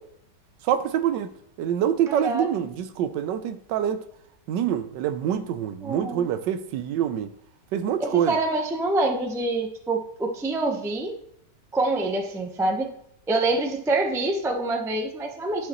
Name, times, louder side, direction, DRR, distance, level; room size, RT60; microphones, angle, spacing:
voice 1, 0.6-1.3 1.6-4.0 4.5-7.3 7.7-8.4, right 9 dB, 85° right, 1.3 m, -26 dB
voice 2, 2.1-2.5 5.8-6.3 8.0-11.1 11.7-12.9 13.3-15.7, right 2 dB, 5° right, 0.3 m, -26 dB
11.0 x 5.2 x 3.0 m
omnidirectional pair, 1.9 m